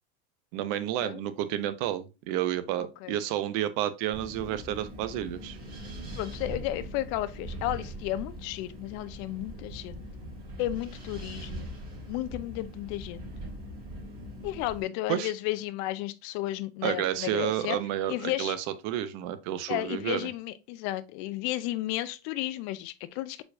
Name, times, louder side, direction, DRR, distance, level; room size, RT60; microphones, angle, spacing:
voice 1, 0.5-5.6 15.1-15.3 16.8-20.3, right 12 dB, 70° right, 0.7 m, -30 dB
Wind, 4.1-14.8, right 1 dB, 30° right, 2.5 m, -41 dB
voice 2, 6.2-10.1 10.6-11.7 12.1-13.3 14.4-17.8 18.1-18.6 19.7-23.4, left 15 dB, 70° left, 0.5 m, -33 dB
4.5 x 4.4 x 2.6 m
cardioid pair, 145°, 29 cm